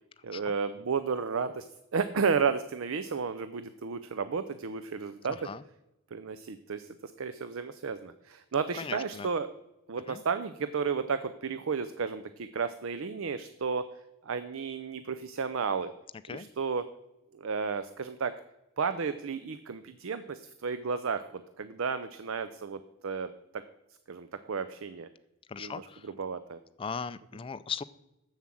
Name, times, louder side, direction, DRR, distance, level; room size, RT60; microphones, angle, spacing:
voice 1, 0.2-1.7 1.9-5.4 6.1-9.5 9.9-13.9 14.2-15.9 16.3-16.8 17.3-18.3 18.8-23.6 24.1-25.1 25.6-26.6, right 5 dB, 60° right, 12 dB, 0.5 m, -33 dB
voice 2, 8.8-9.3 10.1-10.2 16.3-16.5 25.5-26.1 26.8-27.8, left 5 dB, 25° left, 14 dB, 0.3 m, -38 dB
7.4 x 7.2 x 7.5 m, 0.90 s
head